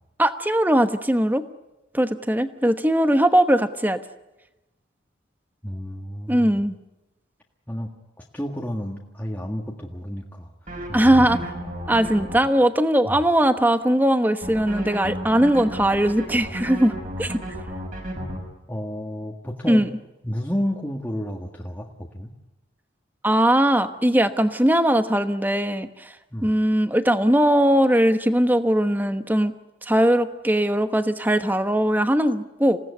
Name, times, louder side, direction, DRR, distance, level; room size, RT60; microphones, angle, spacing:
voice 1, 0.2-1.4 1.9-4.0 6.3-6.8 10.9-11.4 11.9-17.4 19.7-19.9 23.2-26.1 26.4-29.5 29.8-32.8, right 1 dB, 10° right, 10 dB, 1.1 m, -20 dB
voice 2, 5.6-6.6 7.7-10.5 10.9-11.4 13.1-13.2 18.1-18.3 18.7-19.9 20.2-22.3 26.3-26.5, equal, 10° left, -1 dB, 1.7 m, -31 dB
sound 1, 10.7-12.4 14.4-18.4, equal, 40° right, 5.7 m, -32 dB
27.5 x 17.5 x 9.7 m, 1.0 s
head